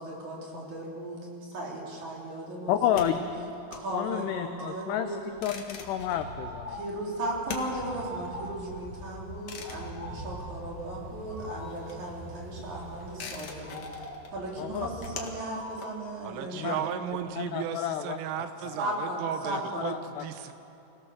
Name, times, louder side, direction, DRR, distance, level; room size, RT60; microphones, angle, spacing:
voice 1, 0.0-3.2 3.7-5.2 6.7-17.4 18.8-20.0, right 1 dB, 40° right, -3 dB, 4.5 m, -36 dB
voice 2, 2.7-3.2 3.9-5.1 5.4-6.8 14.6-14.9 16.6-16.8 17.4-18.2 19.8-20.2, left 11 dB, 85° left, 8 dB, 2.3 m, -30 dB
sound 1, 2.7-11.1 11.4-17.1, left 5 dB, 60° left, 1.8 m, -44 dB
sound 2, 4.3-5.1 6.1-7.0 7.8-8.7 9.5-10.4 11.3-12.0 13.6-14.3 15.3-16.1, equal, 20° left, 4.1 m, -43 dB
sound 3, 5.4-15.1, right 2 dB, 55° right, 7.6 m, -45 dB
voice 3, 16.2-20.5, right 9 dB, 85° right, 9 dB, 3.5 m, -35 dB
26.5 x 17.0 x 6.4 m, 3.0 s
omnidirectional pair, 5.7 m